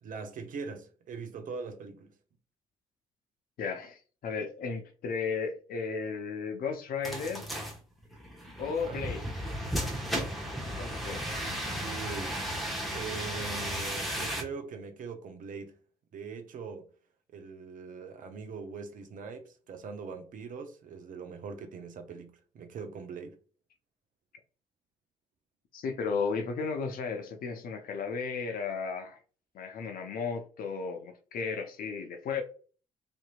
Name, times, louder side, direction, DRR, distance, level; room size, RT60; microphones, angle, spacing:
voice 1, 0.0-2.2 8.6-9.0 11.7-12.4 12.9-15.8 16.1-16.9 17.3-23.4, right 5 dB, 50° right, 0.6 m, -42 dB
voice 2, 3.6-7.4 8.6-9.2 10.7-11.2 25.7-29.2 29.5-32.4, left 5 dB, 55° left, 0.6 m, -34 dB
sound 1, 7.0-14.4, equal, ahead, 0.9 m, -35 dB
2.8 x 2.6 x 2.3 m
figure-of-eight pair, 40°, 17 cm